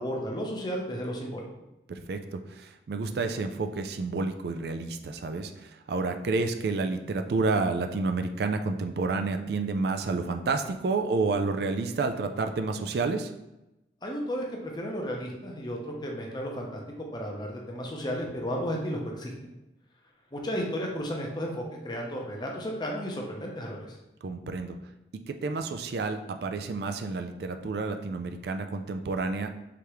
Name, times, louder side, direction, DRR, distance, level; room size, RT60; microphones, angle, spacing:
voice 1, 0.0-1.5 14.0-19.3 20.3-24.0, equal, 25° left, 0 dB, 0.7 m, -33 dB
voice 2, 1.9-13.3 24.2-24.8 25.3-29.5, right 3 dB, 60° right, 6 dB, 0.3 m, -30 dB
4.8 x 3.4 x 3.0 m, 0.94 s
head